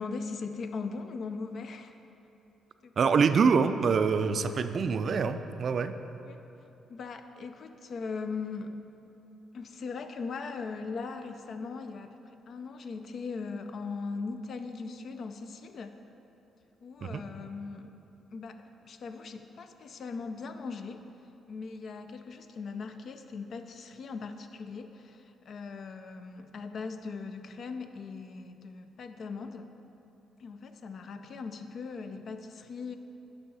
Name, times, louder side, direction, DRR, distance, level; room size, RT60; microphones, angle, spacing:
voice 1, 0.0-2.0 2.8-2.9 4.4-4.5 6.2-6.4 6.9-8.8 9.5-12.2 12.5-16.0 16.8-17.9 18.3-21.0 21.5-29.7 30.4-33.0, left 4 dB, 55° left, 8 dB, 0.5 m, -39 dB
voice 2, 3.0-5.9 17.0-17.2, right 5 dB, 50° right, 10 dB, 0.3 m, -25 dB
9.5 x 5.6 x 4.1 m, 2.9 s
cardioid pair, 90°, 0 cm